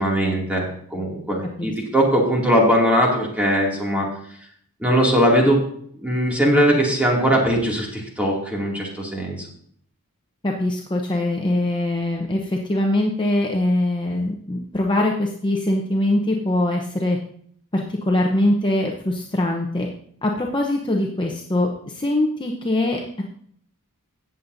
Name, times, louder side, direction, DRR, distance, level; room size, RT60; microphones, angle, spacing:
voice 1, 0.0-4.1 4.8-5.6 6.0-9.5, equal, 5° right, -2 dB, 2.4 m, -20 dB
voice 2, 10.4-17.2 17.7-19.9 20.2-23.2, left 1 dB, 20° left, 0 dB, 0.8 m, -22 dB
17.0 x 7.3 x 2.7 m, 0.63 s
head